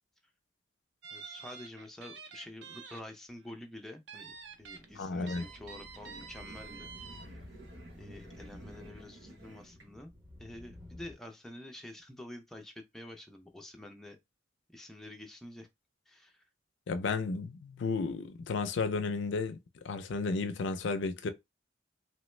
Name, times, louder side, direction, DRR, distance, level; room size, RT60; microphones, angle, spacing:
sound 1, 1.0-3.0 3.4-3.5 4.1-4.8 5.3-7.3, right 5 dB, 60° right, 0.5 m, -48 dB
voice 1, 1.1-4.3 4.6-6.9 7.9-10.1 10.4-14.2 14.7-15.7 16.1-16.4, left 1 dB, ahead, 0.3 m, -48 dB
sound 2, 4.4-11.1, left 1 dB, 15° right, 0.7 m, -52 dB
sound 3, 4.7-9.9, right 2 dB, 85° right, 1.1 m, -55 dB
voice 2, 5.0-5.4 16.9-19.6 19.8-21.3, left 4 dB, 70° left, 0.4 m, -33 dB
3.0 x 2.0 x 3.1 m
head